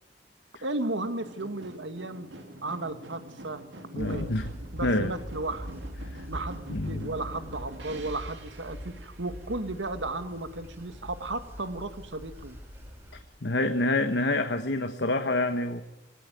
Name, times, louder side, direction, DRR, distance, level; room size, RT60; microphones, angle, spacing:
voice 1, 0.6-2.3 2.6-3.6 3.9-4.3 4.7-5.8 6.3-12.6, right 2 dB, 90° right, 10 dB, 1.7 m, -34 dB
sound 1, 1.0-11.0 11.3-12.1 12.4-12.5, right 1 dB, 75° right, 2.9 m, -47 dB
voice 2, 3.9-4.5 4.8-5.1 6.1-6.3 6.7-7.1 13.4-15.8, left 2 dB, 65° left, 7 dB, 1.2 m, -27 dB
sound 2, 4.0-13.2, equal, 15° right, 6.3 m, -42 dB
21.5 x 17.0 x 9.2 m, 0.93 s
head